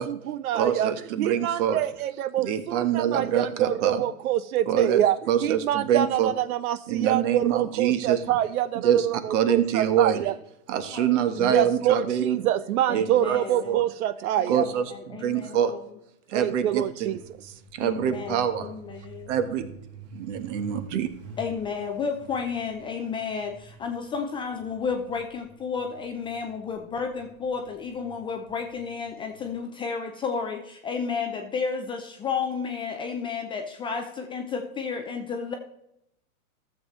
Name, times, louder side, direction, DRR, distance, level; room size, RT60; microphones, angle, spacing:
voice 1, 0.0-0.9 1.2-5.2 5.4-10.3 11.4-14.6 16.3-17.2, right 12 dB, 70° right, 14 dB, 0.5 m, -26 dB
voice 2, 0.5-1.8 2.4-4.0 4.7-5.0 5.3-6.3 6.9-8.2 8.8-10.3 10.7-12.4 12.9-13.4 13.6-13.8 14.5-15.7 16.3-17.2 17.7-18.7 19.3-19.7 20.1-21.1, right 9 dB, 55° right, 10 dB, 1.3 m, -25 dB
voice 3, 10.9-11.7 12.9-13.8 14.4-15.8 17.8-19.3 21.4-35.5, left 5 dB, 10° left, 4 dB, 0.4 m, -32 dB
Truck, 17.2-29.6, right 2 dB, 30° right, 1.7 m, -49 dB
13.5 x 7.4 x 3.2 m, 0.82 s
hypercardioid pair, 115°, 44 cm